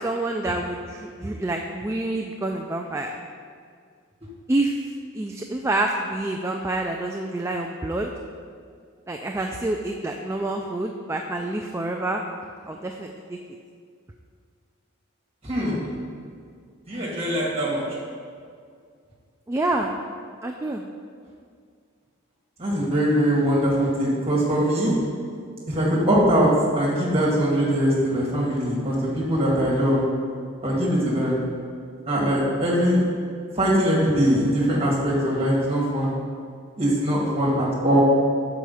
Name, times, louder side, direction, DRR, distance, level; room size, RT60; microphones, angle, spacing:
voice 1, 0.0-3.1 4.5-4.8 5.1-8.1 9.1-12.2 12.6-13.4 19.5-19.9 20.4-20.8, right 2 dB, 15° right, 2 dB, 0.3 m, -27 dB
voice 2, 15.4-15.8 16.9-17.8 22.6-24.9 25.7-30.0 30.6-31.4 32.1-33.0 33.6-36.1 36.8-38.0, equal, 30° right, -5 dB, 2.0 m, -22 dB
6.9 x 4.8 x 5.6 m, 2.1 s
head